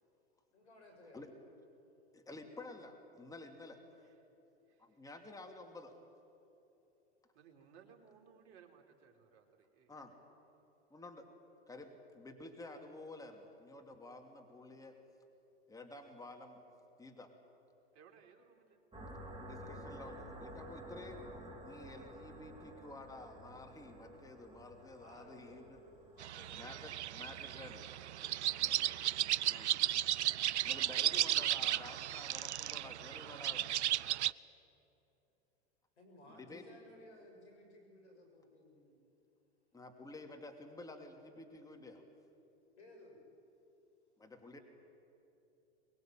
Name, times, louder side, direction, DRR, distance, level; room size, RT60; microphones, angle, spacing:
voice 1, 0.5-1.3 25.0-25.7 26.1-26.6 28.4-28.9 36.0-39.0 42.8-43.2, left 1 dB, 80° left, 2 dB, 7.3 m, -59 dB
voice 2, 2.1-3.8 4.8-6.0 9.9-10.2 10.9-11.3 11.7-15.0 15.7-16.6 17.0-17.3 19.4-25.8 26.5-27.9 29.5-29.8 30.6-33.8 36.3-36.7 39.7-42.1 44.2-44.6, left 2 dB, 10° left, 3 dB, 2.7 m, -51 dB
voice 3, 4.6-5.0 7.3-10.0 17.9-18.8, right 6 dB, 50° right, 2 dB, 3.8 m, -62 dB
sound 1, 18.9-28.5, right 1 dB, 15° right, 4.1 m, -52 dB
sound 2, 26.2-34.3, right 12 dB, 80° right, 0.6 m, -35 dB
22.5 x 22.0 x 9.1 m, 2.9 s
hypercardioid pair, 95°, 34 cm